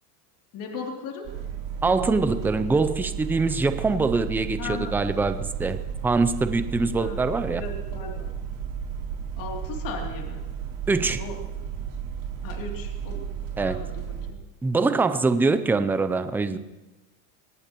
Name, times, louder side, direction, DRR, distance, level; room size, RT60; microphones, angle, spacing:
voice 1, 0.5-1.3 3.8-4.0 4.6-5.0 7.0-7.2 7.5-8.3 9.4-10.4 11.2-11.4 12.4-13.2 13.6-14.4, left 4 dB, 45° left, 0 dB, 3.0 m, -37 dB
sound 1, 1.2-14.3, right 8 dB, 50° right, 3.3 m, -33 dB
voice 2, 1.8-7.6 10.9-11.2 13.6-13.8 14.6-16.6, right 3 dB, 5° right, 10 dB, 0.4 m, -24 dB
24.5 x 18.5 x 3.0 m, 1.1 s
supercardioid pair, 140°, 46 cm